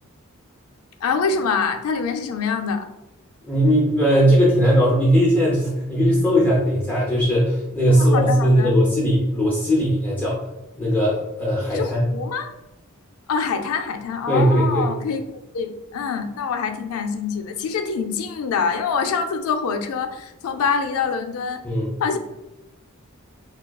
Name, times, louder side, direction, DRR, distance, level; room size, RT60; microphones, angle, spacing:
voice 1, 1.0-2.9 7.9-8.8 11.7-12.5 13.3-15.2 15.5-21.6 22.0-22.2, left 5 dB, 70° left, 6 dB, 0.4 m, -25 dB
voice 2, 3.4-10.4 10.8-12.0 14.3-14.9 21.6-22.0, equal, 5° left, -6 dB, 0.5 m, -18 dB
3.6 x 2.3 x 2.2 m, 0.94 s
head